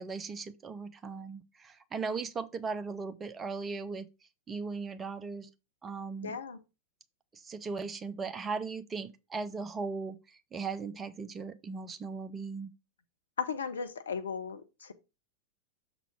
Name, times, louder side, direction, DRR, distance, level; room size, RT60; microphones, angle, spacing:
voice 1, 0.0-4.1 4.5-5.5 5.8-6.4 7.3-12.7, right 4 dB, 20° right, 0.7 m, -38 dB
voice 2, 6.2-6.6 13.4-14.9, left 6 dB, 70° left, 0.8 m, -36 dB
6.9 x 3.9 x 4.8 m
figure-of-eight pair, 90°, 0 cm